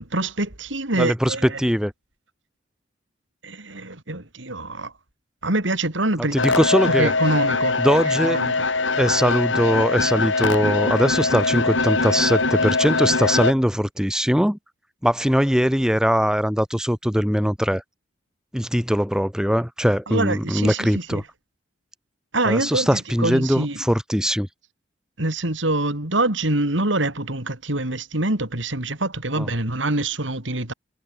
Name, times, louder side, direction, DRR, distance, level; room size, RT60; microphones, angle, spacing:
voice 1, 0.0-1.6 3.4-4.9 5.4-6.4 6.9-8.5 20.1-21.2 22.3-23.8 25.2-30.7, right 2 dB, 80° right, 4.3 m, -25 dB
voice 2, 1.0-1.9 6.3-7.1 7.8-8.4 9.0-14.6 15.0-17.8 18.5-21.2 22.5-24.5 29.4-29.5, equal, 5° right, 1.8 m, -21 dB
sound 1, 6.4-13.5, left 3 dB, 80° left, 5.3 m, -22 dB
head